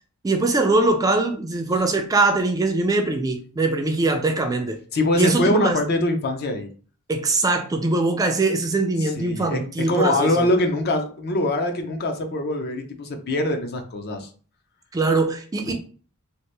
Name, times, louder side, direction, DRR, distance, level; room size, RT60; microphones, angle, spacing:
voice 1, 0.2-4.8 5.1-5.8 7.1-10.5 14.9-15.7, right 3 dB, 15° right, 0.3 m, -22 dB
voice 2, 4.9-6.7 9.0-9.6 9.9-14.3 15.7-15.8, left 1 dB, 45° left, 0.5 m, -23 dB
2.8 x 2.5 x 3.2 m
head